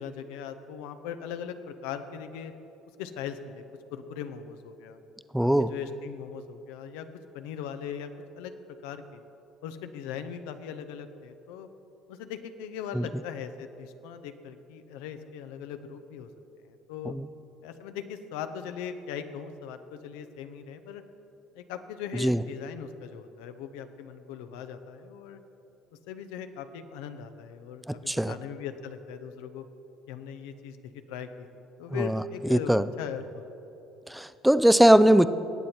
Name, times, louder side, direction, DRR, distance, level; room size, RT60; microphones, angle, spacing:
voice 1, 0.0-2.5 3.0-3.6 3.9-5.0 5.4-7.1 7.3-8.1 8.3-8.6 8.8-9.2 9.6-11.7 12.1-16.3 16.7-17.1 17.6-21.0 21.5-25.4 26.1-29.7 30.1-33.7, left 8 dB, 85° left, 9 dB, 0.7 m, -39 dB
voice 2, 5.3-5.7 12.9-13.0 17.1-17.2 22.2-22.4 28.1-28.3 31.9-32.2 32.5-32.9 34.1-35.3, right 1 dB, 5° right, 14 dB, 0.4 m, -20 dB
18.5 x 7.9 x 4.4 m, 3.0 s
supercardioid pair, 90°, 0 cm